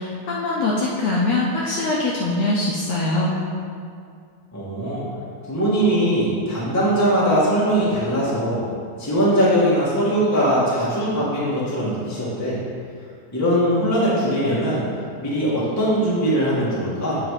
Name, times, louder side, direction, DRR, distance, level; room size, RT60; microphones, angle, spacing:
voice 1, 0.0-3.3, left 2 dB, 75° left, -4 dB, 1.6 m, -22 dB
voice 2, 4.5-5.0 5.5-8.6 9.0-12.6 13.3-14.8 15.2-17.2, equal, 10° left, -8 dB, 1.1 m, -21 dB
7.9 x 4.9 x 4.8 m, 2.3 s
omnidirectional pair, 3.5 m